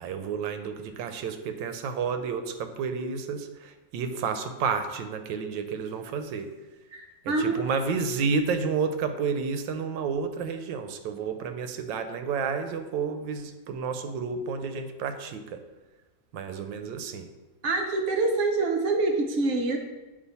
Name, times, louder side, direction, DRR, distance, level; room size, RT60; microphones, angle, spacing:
voice 1, 0.0-6.5 7.2-15.6 16.3-17.3, right 5 dB, 85° right, 8 dB, 1.3 m, -31 dB
voice 2, 6.9-7.7 17.6-19.8, right 3 dB, 65° right, 3 dB, 0.7 m, -26 dB
8.5 x 2.8 x 4.0 m, 1.1 s
omnidirectional pair, 2.0 m